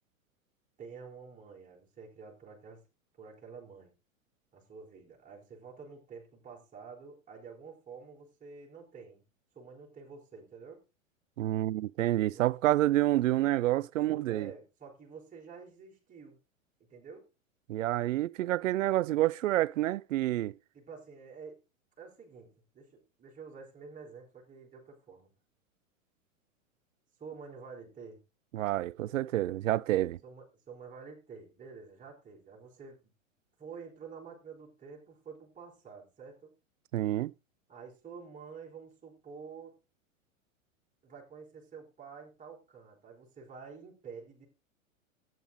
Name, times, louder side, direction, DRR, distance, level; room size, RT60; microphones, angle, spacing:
voice 1, 0.8-2.8 3.2-3.9 4.5-9.2 9.5-10.8 12.3-12.5 14.1-16.4 16.9-17.3 20.7-21.6 22.0-25.3 27.2-28.2 30.2-33.0 33.6-36.5 37.7-39.8 41.0-44.5, right 5 dB, 20° right, 4.8 m, -49 dB
voice 2, 11.4-14.5 17.7-20.5 28.5-30.2 36.9-37.3, right 15 dB, 70° right, 0.6 m, -28 dB
13.5 x 9.3 x 4.0 m
hypercardioid pair, 100°, 41 cm